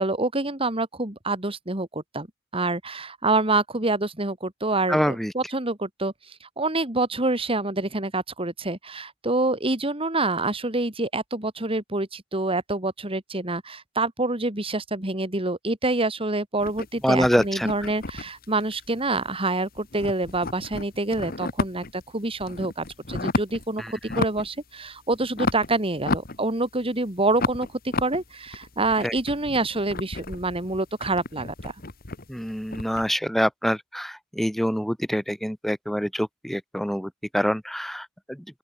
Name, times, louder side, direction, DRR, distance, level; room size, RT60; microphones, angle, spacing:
voice 1, 0.0-2.3 2.5-27.7 28.0-31.7, right 2 dB, 30° right, 2.9 m, -27 dB
voice 2, 4.9-5.3 17.0-17.7 23.8-23.9 29.0-29.1 32.3-38.6, equal, ahead, 1.9 m, -26 dB
sound 1, 16.6-19.5 19.8-22.0 22.4-23.7 24.0-24.6 24.9-26.9 27.3-33.1, left 3 dB, 50° left, 1.9 m, -32 dB
open air
head